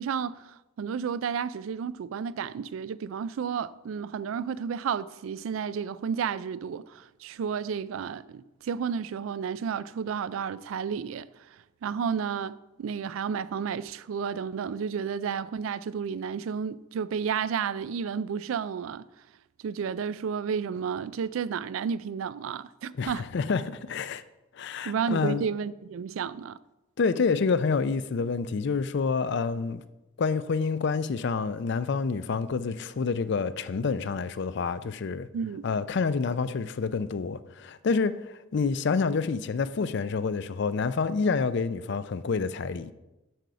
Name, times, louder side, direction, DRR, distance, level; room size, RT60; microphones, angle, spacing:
voice 1, 0.0-11.3 11.8-19.1 19.6-23.3 24.8-26.6 35.3-35.6, right 6 dB, 85° right, 0.3 m, -32 dB
voice 2, 23.0-24.2 24.6-25.5 27.0-29.8 30.2-35.3 35.6-42.9, left 5 dB, 60° left, 0.4 m, -28 dB
7.8 x 4.8 x 6.8 m
head